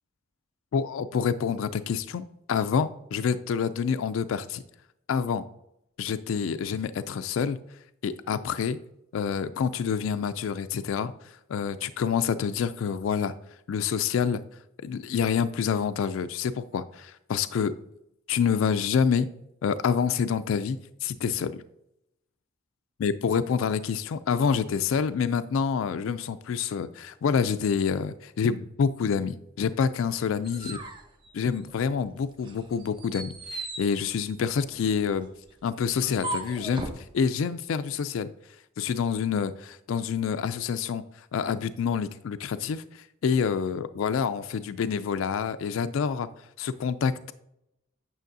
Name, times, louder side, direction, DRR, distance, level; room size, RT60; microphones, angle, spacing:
voice 1, 0.7-4.6 5.1-5.4 6.0-7.6 8.0-8.8 9.1-13.3 13.7-14.4 14.8-17.7 18.3-19.3 19.6-21.6 23.0-30.8 31.3-35.3 35.6-38.3 38.8-46.3 46.6-47.3, left 6 dB, 75° left, 12 dB, 0.3 m, -27 dB
sound 1, 30.0-32.0 32.4-37.1, right 2 dB, 25° right, 0.8 m, -39 dB
9.0 x 6.2 x 2.6 m, 0.82 s
head